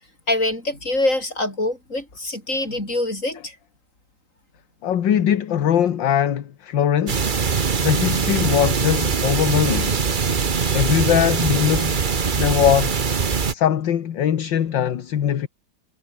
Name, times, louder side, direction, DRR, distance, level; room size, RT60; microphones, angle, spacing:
voice 1, 0.3-3.5, left 1 dB, 40° left, 8.2 m, -24 dB
voice 2, 4.8-7.3 7.8-10.0 10.7-12.0 12.3-13.0 13.5-15.5, left 9 dB, 70° left, 2.0 m, -21 dB
sound 1, 7.1-13.5, right 5 dB, 35° right, 0.9 m, -22 dB
omnidirectional pair, 2.2 m